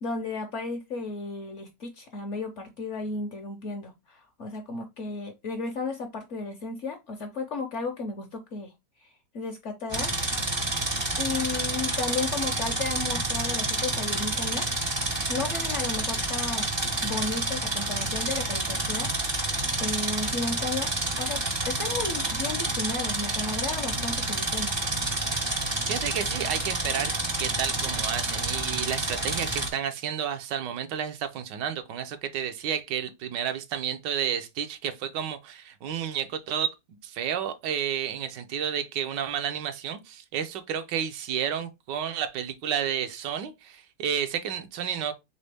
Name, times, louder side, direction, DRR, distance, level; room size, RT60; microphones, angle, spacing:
voice 1, 0.0-8.7 9.3-10.1 11.2-14.7 15.3-16.7 17.0-19.1 19.8-20.9 21.2-24.8, left 3 dB, 55° left, 0.8 m, -33 dB
sound 1, 9.9-29.7, right 2 dB, 30° right, 0.5 m, -29 dB
voice 2, 25.9-27.1 27.4-36.7 37.0-45.1, right 9 dB, 80° right, 1.3 m, -31 dB
4.1 x 3.5 x 3.3 m
omnidirectional pair, 1.9 m